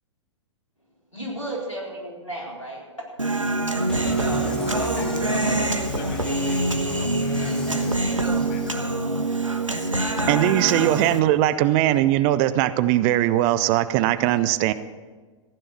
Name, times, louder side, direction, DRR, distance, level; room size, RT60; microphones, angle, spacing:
voice 1, 1.1-3.5 4.1-5.1 5.3-5.6, right 1 dB, 90° left, -3 dB, 4.1 m, -35 dB
Human voice, 3.2-11.2, right 2 dB, 85° right, 1.3 m, -25 dB
sound 1, 3.9-8.7, left 3 dB, 5° left, 2.3 m, -36 dB
voice 2, 4.4-8.7, left 7 dB, 40° left, 8 dB, 1.0 m, -41 dB
voice 3, 10.3-14.7, right 14 dB, 30° right, 15 dB, 0.5 m, -20 dB
15.0 x 10.5 x 5.9 m, 1.4 s
figure-of-eight pair, 105°, 16 cm